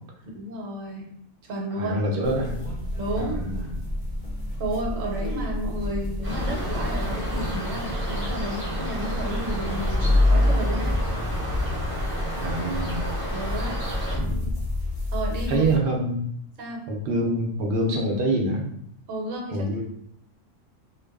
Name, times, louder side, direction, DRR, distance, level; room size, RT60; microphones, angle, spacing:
voice 1, 0.2-1.1 1.4-2.0 3.0-3.4 4.6-10.9 13.3-13.8 15.1-15.7 16.6-16.8 19.1-19.8, right 1 dB, 80° right, 0 dB, 1.0 m, -32 dB
voice 2, 1.8-2.6 3.2-3.7 12.4-13.1 14.1-14.5 15.5-16.2 16.9-18.7 19.5-19.8, right 1 dB, 65° right, 0 dB, 0.6 m, -26 dB
sound 1, 2.2-15.8, left 1 dB, 45° left, 0.5 m, -28 dB
sound 2, 6.2-14.2, equal, 10° right, 0.6 m, -31 dB
2.5 x 2.2 x 2.3 m, 0.70 s
omnidirectional pair, 1.4 m